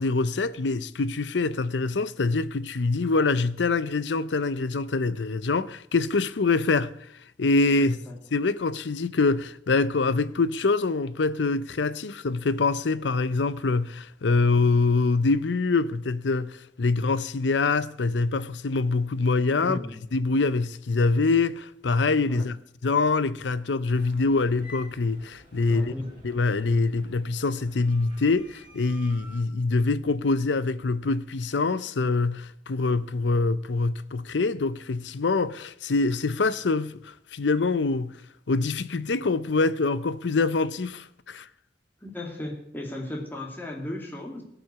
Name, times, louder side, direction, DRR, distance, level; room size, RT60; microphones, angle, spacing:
voice 1, 0.0-6.9 7.4-8.0 8.3-19.8 20.1-22.6 22.8-25.9 26.2-38.2 38.5-41.5, left 3 dB, 80° left, 0.6 m, -25 dB
voice 2, 7.8-8.2 19.6-20.0 22.3-22.5 25.7-26.1 42.0-44.4, left 1 dB, 10° left, 2.5 m, -35 dB
sound 1, 23.9-29.4, equal, 30° right, 3.7 m, -51 dB
17.0 x 6.0 x 8.2 m
head